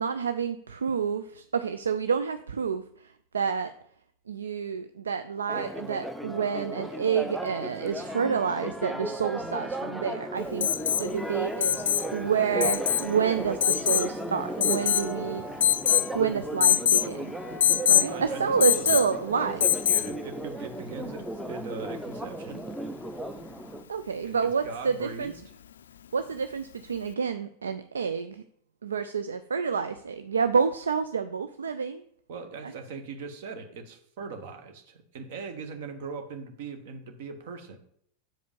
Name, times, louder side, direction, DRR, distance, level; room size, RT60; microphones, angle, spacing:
voice 1, 0.0-3.7 4.3-11.8 12.1-15.4 16.1-17.4 17.9-19.9 23.9-25.3 26.1-28.4 28.8-32.0, right 6 dB, 70° right, 10 dB, 0.4 m, -29 dB
Church bell, 5.5-23.8, right 1 dB, ahead, 0.6 m, -35 dB
Alarm, 10.6-11.1 11.6-12.1 12.6-13.1 13.6-14.1 14.6-15.1 15.6-16.1 16.6-17.1 17.6-18.1 18.6-19.1 19.6-20.1 21.8-21.9, left 10 dB, 65° left, 0.3 m, -23 dB
voice 2, 18.0-19.0 19.9-22.6 24.3-25.3 32.3-37.8, right 5 dB, 55° right, 6 dB, 1.2 m, -40 dB
7.6 x 5.1 x 5.2 m, 0.67 s
figure-of-eight pair, 90°, 0 cm